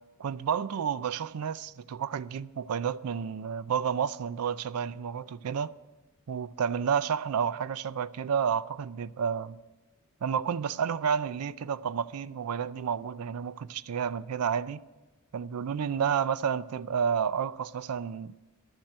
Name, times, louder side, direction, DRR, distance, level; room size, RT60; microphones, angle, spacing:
voice 1, 0.2-5.7 6.3-9.6 10.2-14.8 15.3-18.3, right 7 dB, 90° right, 0.4 m, -30 dB
11.0 x 7.4 x 7.9 m
head